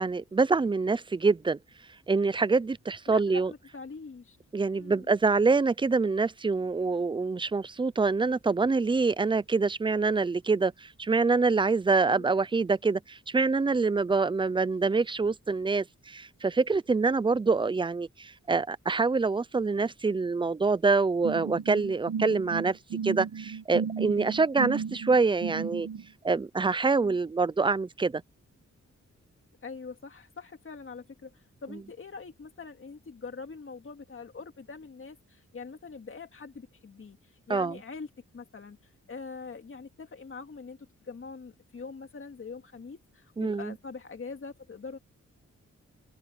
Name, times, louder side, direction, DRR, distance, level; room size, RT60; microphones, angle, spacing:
voice 1, 0.0-1.6 2.1-3.5 4.5-22.8 23.0-25.9 26.2-28.2 31.7-31.8 37.5-37.8 43.4-43.7, right 4 dB, 15° right, 0.4 m, -26 dB
voice 2, 3.1-4.4 4.7-5.1 12.0-12.3 26.9-27.2 29.6-38.8 39.1-40.8 41.0-45.0, left 4 dB, 45° left, 2.8 m, -43 dB
sound 1, 21.2-26.0, right 6 dB, 85° right, 1.7 m, -34 dB
open air
wide cardioid pair, 145°, 29 cm